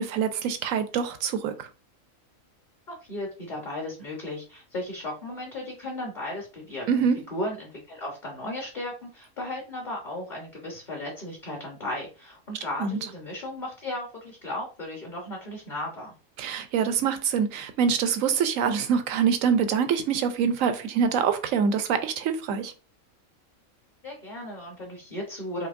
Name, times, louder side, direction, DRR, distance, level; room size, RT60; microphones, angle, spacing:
voice 1, 0.0-1.5 6.9-7.2 12.8-13.0 16.4-22.7, right 7 dB, 75° right, 1.0 m, -25 dB
voice 2, 2.9-16.1 24.0-25.7, left 1 dB, 35° left, 1.3 m, -35 dB
5.2 x 3.0 x 2.5 m
omnidirectional pair, 1.4 m